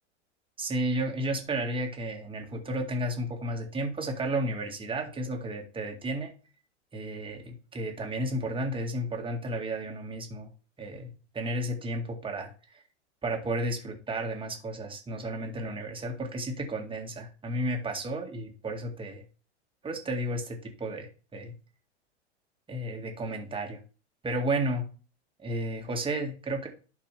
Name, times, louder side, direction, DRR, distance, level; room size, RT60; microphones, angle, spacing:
voice 1, 0.6-6.3 6.9-10.5 10.8-11.1 11.3-12.8 13.2-19.2 19.8-21.5 22.7-23.8 24.2-24.8 25.4-26.7, right 1 dB, 15° right, 2 dB, 2.1 m, -32 dB
11.5 x 4.7 x 3.4 m, 0.35 s
hypercardioid pair, 105°, 35 cm